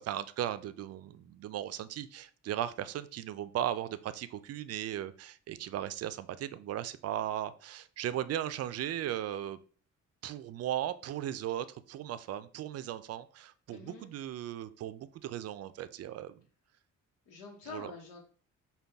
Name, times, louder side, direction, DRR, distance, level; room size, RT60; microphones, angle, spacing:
voice 1, 0.0-9.6 10.2-16.4 17.7-17.9, right 11 dB, 55° right, 14 dB, 0.4 m, -37 dB
voice 2, 13.7-14.1 17.3-18.2, left 4 dB, 90° left, -1 dB, 1.0 m, -46 dB
5.3 x 2.3 x 3.4 m, 0.42 s
cardioid pair, 90°, 30 cm